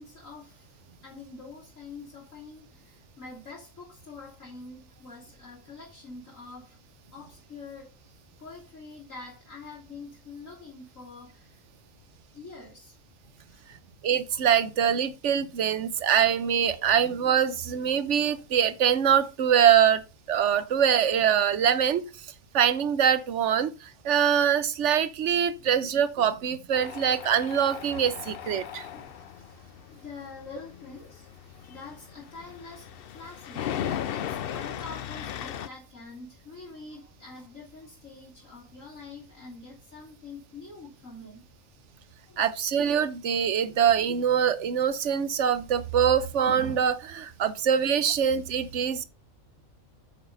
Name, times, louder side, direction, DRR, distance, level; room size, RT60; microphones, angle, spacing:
voice 1, 0.0-6.8 7.1-11.6 12.3-13.0 13.5-13.7 25.6-25.7 28.9-31.3 31.7-32.9 33.1-33.7 34.1-41.5 42.2-42.5 43.6-43.9, left 4 dB, 75° left, 3.5 m, -46 dB
voice 2, 14.0-20.0 20.3-22.1 22.5-28.9 42.4-49.1, right 8 dB, 65° right, 1.1 m, -24 dB
Tools, 26.7-35.7, left 10 dB, 60° left, 0.7 m, -37 dB
8.4 x 6.7 x 3.9 m
omnidirectional pair, 1.4 m